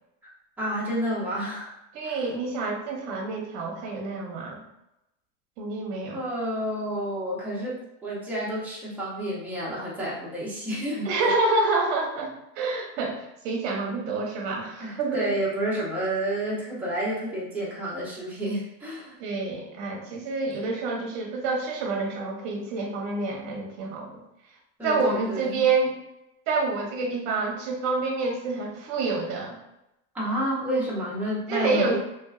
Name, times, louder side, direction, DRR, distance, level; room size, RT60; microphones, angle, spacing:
voice 1, 0.6-1.7 2.0-2.2 6.1-11.3 14.8-19.2 24.8-25.6 30.1-32.0, right 1 dB, 5° right, -7 dB, 0.6 m, -30 dB
voice 2, 1.9-4.6 5.6-6.2 11.0-15.3 19.2-24.2 24.8-25.9 26.5-29.6 31.5-32.0, right 3 dB, 45° right, 0 dB, 0.9 m, -28 dB
3.2 x 2.5 x 2.3 m, 0.88 s
supercardioid pair, 160°, 39 cm